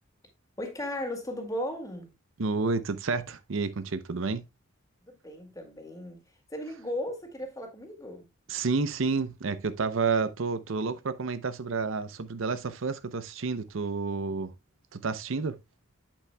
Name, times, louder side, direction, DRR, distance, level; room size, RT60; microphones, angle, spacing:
voice 1, 0.6-2.1 5.0-6.2 6.5-8.3, left 1 dB, 15° left, 2.0 m, -36 dB
voice 2, 2.4-4.4 8.5-14.5 14.9-15.6, right 4 dB, 65° right, 0.6 m, -30 dB
8.6 x 8.4 x 2.2 m
head